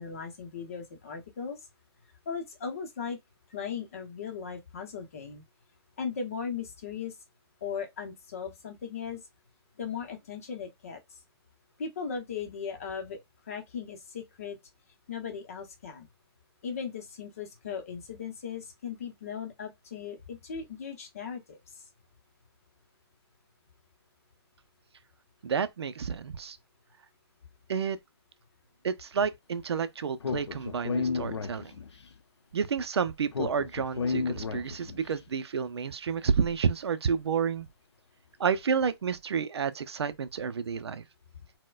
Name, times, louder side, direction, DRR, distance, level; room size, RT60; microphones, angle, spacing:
voice 1, 0.0-1.6 2.3-3.2 3.5-5.4 6.0-7.1 7.6-9.2 9.8-11.2 11.8-14.6 15.1-16.1 16.6-21.6, left 6 dB, 30° left, 0.7 m, -37 dB
voice 2, 25.4-26.6 27.7-28.0 28.8-31.7 32.5-37.7 38.4-41.0, right 6 dB, 70° right, 0.5 m, -30 dB
Speech, 30.2-32.0 33.3-35.1, left 5 dB, 85° left, 0.7 m, -32 dB
4.2 x 2.1 x 2.3 m
hypercardioid pair, 170°, 14 cm